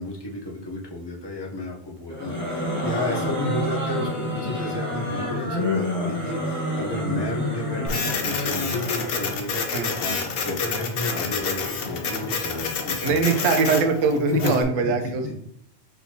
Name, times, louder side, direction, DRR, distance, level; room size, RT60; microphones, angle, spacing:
voice 1, 0.0-13.5 14.3-14.5 14.8-15.4, left 2 dB, 25° left, -2 dB, 0.7 m, -32 dB
sound 1, 2.1-9.4, left 1 dB, 10° left, 1.2 m, -28 dB
Printer, 7.9-14.6, left 5 dB, 55° left, 0.8 m, -29 dB
voice 2, 13.0-15.4, right 4 dB, 80° right, 6 dB, 1.0 m, -22 dB
4.6 x 4.2 x 2.8 m, 0.72 s
omnidirectional pair, 1.3 m